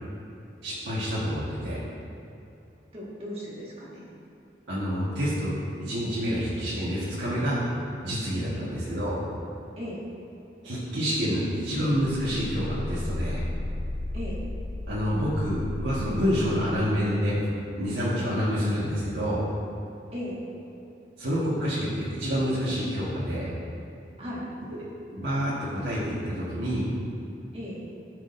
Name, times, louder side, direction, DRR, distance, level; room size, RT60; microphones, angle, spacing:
voice 1, 0.6-1.8 4.7-5.5 5.8-7.6 8.0-9.2 10.6-13.4 14.9-17.4 17.8-19.4 21.2-23.5 25.1-26.9, equal, 90° right, -9 dB, 1.5 m, -28 dB
voice 2, 2.9-4.2 8.5-8.7 9.8-10.0 14.1-14.4 20.1-20.4 24.2-24.5 27.5-27.8, equal, 35° right, -6 dB, 1.7 m, -37 dB
sound 1, 11.8-17.4 17.8-18.0, left 1 dB, 35° left, 0.4 m, -35 dB
12.5 x 6.3 x 2.7 m, 2.8 s
head